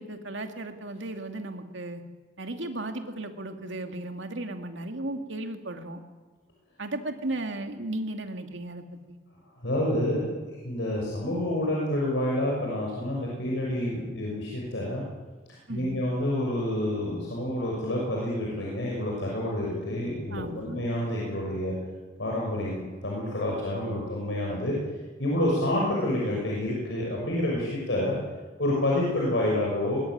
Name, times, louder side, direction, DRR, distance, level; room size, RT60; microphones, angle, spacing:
voice 1, 0.0-2.0 2.4-6.0 6.8-9.2 15.7-16.0 20.3-20.8, right 2 dB, 75° right, 5 dB, 2.6 m, -35 dB
voice 2, 9.6-10.3 10.6-15.0 15.7-21.8 22.2-24.7 25.2-28.1 28.6-30.0, left 1 dB, 70° left, -3 dB, 6.4 m, -28 dB
21.0 x 20.5 x 9.5 m, 1.3 s
head